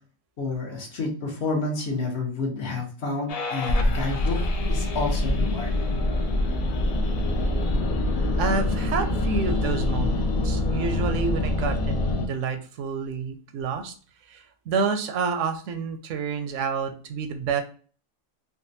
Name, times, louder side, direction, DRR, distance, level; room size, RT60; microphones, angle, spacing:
voice 1, 0.4-4.4 4.7-5.8, left 3 dB, 60° left, 0 dB, 1.1 m, -29 dB
sound 1, 3.3-12.3, left 2 dB, 80° left, 0.3 m, -25 dB
voice 2, 8.4-13.9 14.3-17.6, right 5 dB, 80° right, 7 dB, 0.9 m, -29 dB
3.7 x 2.2 x 2.6 m, 0.40 s
omnidirectional pair, 1.3 m